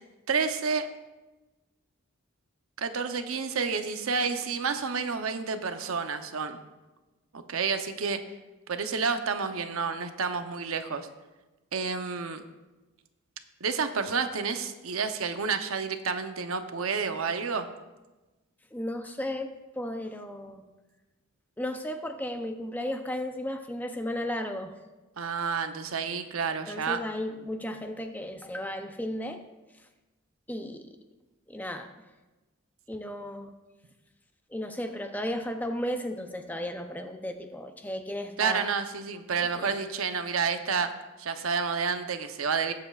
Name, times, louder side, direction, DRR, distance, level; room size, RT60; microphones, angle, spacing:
voice 1, 0.3-0.9 2.8-6.6 7.3-8.2 8.7-11.1 11.7-12.4 13.6-17.7 25.2-27.0 38.4-40.9 41.2-42.7, right 5 dB, 80° right, 8 dB, 0.8 m, -30 dB
voice 2, 18.7-20.6 21.6-24.8 26.7-29.4 30.5-31.0 31.5-31.9 32.9-33.5 34.5-38.7 39.3-39.8, left 1 dB, 10° left, 6 dB, 0.6 m, -34 dB
19.5 x 7.7 x 2.4 m, 1.1 s
head